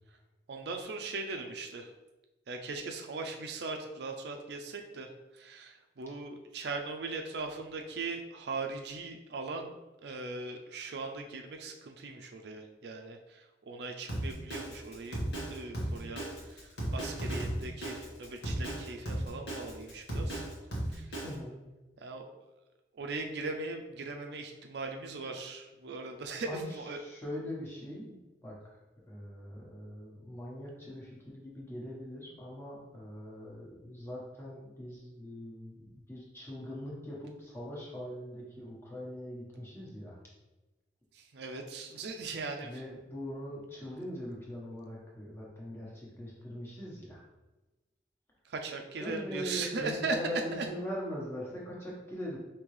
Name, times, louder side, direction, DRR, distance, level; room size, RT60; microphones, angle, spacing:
voice 1, 0.5-1.9 2.5-9.7 10.0-15.2 15.5-20.4 20.9-21.2 22.0-22.3 22.9-27.0 41.1-42.8 48.4-50.7, right 3 dB, 70° right, 4 dB, 0.4 m, -39 dB
Drum kit, 14.1-21.3, right 1 dB, 75° left, 1.3 m, -35 dB
voice 2, 21.2-21.6 26.4-26.7 27.0-28.2 28.4-28.8 29.1-40.2 42.6-47.2 49.0-52.4, equal, 15° left, -5 dB, 1.1 m, -41 dB
5.3 x 2.8 x 3.2 m, 1.1 s
head